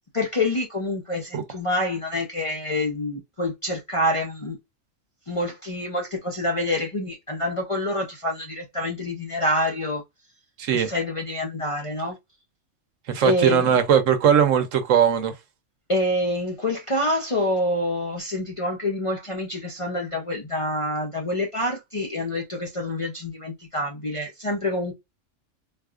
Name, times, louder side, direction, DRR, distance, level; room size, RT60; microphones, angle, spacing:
voice 1, 0.1-4.6 5.3-10.0 10.7-12.2 13.2-13.8 15.9-24.9, left 1 dB, 40° left, 0.5 m, -27 dB
voice 2, 10.6-10.9 13.1-15.3, right 8 dB, 75° right, 1.1 m, -19 dB
3.9 x 2.4 x 2.4 m
omnidirectional pair, 1.3 m